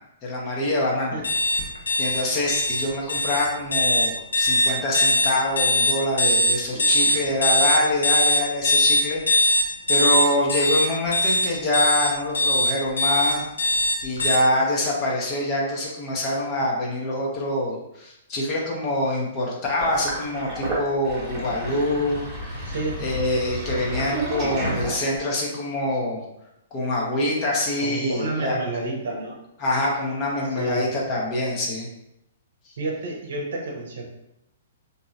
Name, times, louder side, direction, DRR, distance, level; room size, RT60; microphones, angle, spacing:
voice 1, 0.2-1.2 2.0-13.4 14.0-22.3 22.5-26.2 26.7-28.6 29.6-31.9, left 1 dB, 30° left, -3 dB, 0.8 m, -25 dB
sound 1, 1.2-14.4, left 1 dB, 70° left, 0.6 m, -21 dB
voice 2, 6.7-7.2 22.6-23.0 23.8-24.1 27.8-29.4 30.5-30.9 32.8-34.0, right 2 dB, 55° right, -1 dB, 0.8 m, -30 dB
Sink (filling or washing), 19.8-25.4, right 1 dB, 20° right, 1.2 m, -31 dB
3.9 x 2.7 x 2.5 m, 0.84 s
figure-of-eight pair, 115°, 0 cm